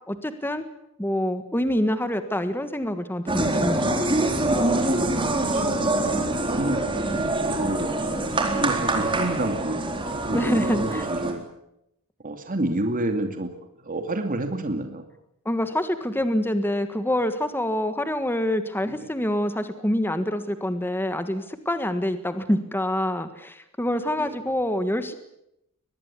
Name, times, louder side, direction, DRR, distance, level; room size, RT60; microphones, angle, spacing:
voice 1, 0.1-0.6 1.0-3.9 10.3-11.1 15.4-25.1, left 1 dB, 10° left, 9 dB, 1.6 m, -26 dB
sound 1, 3.3-11.3, right 2 dB, 25° right, 4.0 m, -25 dB
voice 2, 5.1-6.2 6.5-6.8 7.5-7.9 8.5-9.8 10.1-11.5 12.2-13.5 13.9-15.1 24.2-24.3, right 1 dB, 40° right, 6 dB, 2.5 m, -29 dB
24.0 x 20.0 x 8.4 m, 0.80 s
head